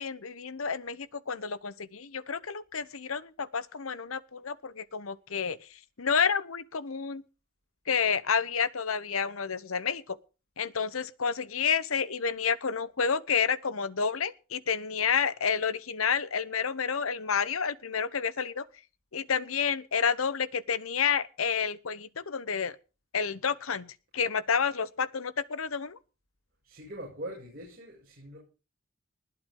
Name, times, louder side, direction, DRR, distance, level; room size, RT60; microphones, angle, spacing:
voice 1, 0.0-5.7 6.0-7.2 7.9-10.2 10.6-18.7 19.1-22.8 23.1-26.0, left 6 dB, 85° left, 1.0 m, -30 dB
voice 2, 26.6-28.4, right 1 dB, 45° right, 6.7 m, -42 dB
20.0 x 11.5 x 3.8 m
head